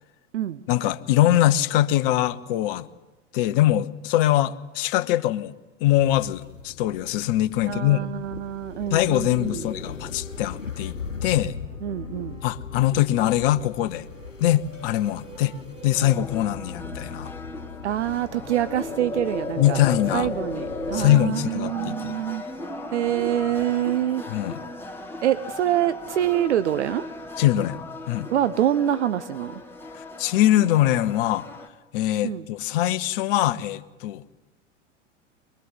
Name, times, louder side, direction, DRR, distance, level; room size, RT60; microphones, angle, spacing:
voice 1, 0.7-2.9 3.3-5.5 5.8-8.1 8.9-11.6 12.4-14.1 14.4-15.5 15.8-17.3 19.6-20.3 20.9-22.2 24.3-24.6 27.4-27.8 28.1-28.3 29.9-31.5 31.9-34.2, left 13 dB, 45° left, 14 dB, 1.1 m, -22 dB
sound 1, 5.9-21.2, left 5 dB, 90° left, 1.1 m, -37 dB
voice 2, 7.6-9.6 11.8-12.4 17.8-19.8 20.1-22.4 22.9-24.2 25.2-27.1 28.3-29.6 32.2-32.5, right 11 dB, 65° right, 14 dB, 0.9 m, -25 dB
sound 2, 8.8-27.4, right 2 dB, 15° right, 2.8 m, -47 dB
sound 3, 15.9-31.7, left 2 dB, 5° left, 2.7 m, -38 dB
24.0 x 21.0 x 9.6 m, 1.1 s
figure-of-eight pair, 90°, 37 cm